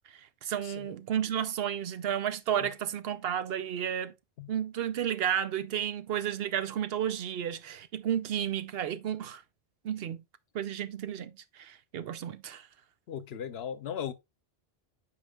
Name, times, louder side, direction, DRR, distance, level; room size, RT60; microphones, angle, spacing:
voice 1, 0.4-4.1 4.5-9.4 9.8-10.2 10.5-12.7, right 9 dB, 75° right, 0.8 m, -32 dB
voice 2, 13.1-14.1, left 8 dB, 80° left, 0.9 m, -37 dB
8.6 x 4.9 x 2.3 m
omnidirectional pair, 1.0 m